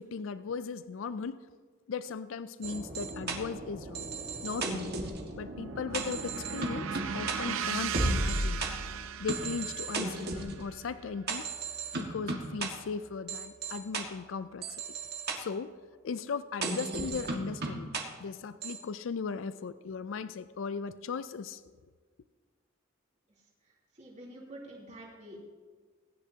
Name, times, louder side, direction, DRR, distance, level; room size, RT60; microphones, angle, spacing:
voice 1, 0.0-1.5 1.9-4.1 4.4-5.0 5.4-8.7 9.2-11.5 11.9-14.8 15.4-15.7 16.0-17.9 18.2-21.6, left 5 dB, 70° left, 13 dB, 0.4 m, -37 dB
sound 1, 2.6-8.7 9.3-10.5 11.3-12.7 13.3-14.0 14.6-15.3 16.6-18.0 18.6-18.8, right 3 dB, 50° right, 1.7 m, -35 dB
sound 2, 5.1-13.1, right 7 dB, 90° right, 0.6 m, -39 dB
voice 2, 23.6-25.4, right 1 dB, 35° right, -4 dB, 3.3 m, -48 dB
23.0 x 10.0 x 2.8 m, 1.5 s
head